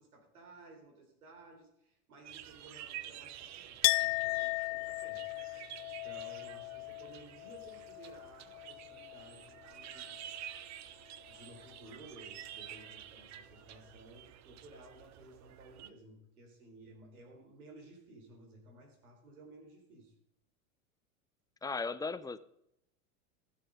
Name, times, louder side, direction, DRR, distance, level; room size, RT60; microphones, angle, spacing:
voice 1, 0.0-5.2 6.0-10.3 11.3-20.1, right 2 dB, 85° right, 3 dB, 4.3 m, -56 dB
sound 1, 2.2-15.9, right 11 dB, 40° right, 1.0 m, -50 dB
Chink clink, 3.8-9.4 9.6-10.5, left 25 dB, 65° left, 0.5 m, -36 dB
voice 2, 21.6-22.4, left 4 dB, 10° left, 13 dB, 0.6 m, -36 dB
15.5 x 8.5 x 5.1 m, 0.78 s
hypercardioid pair, 95°, 43 cm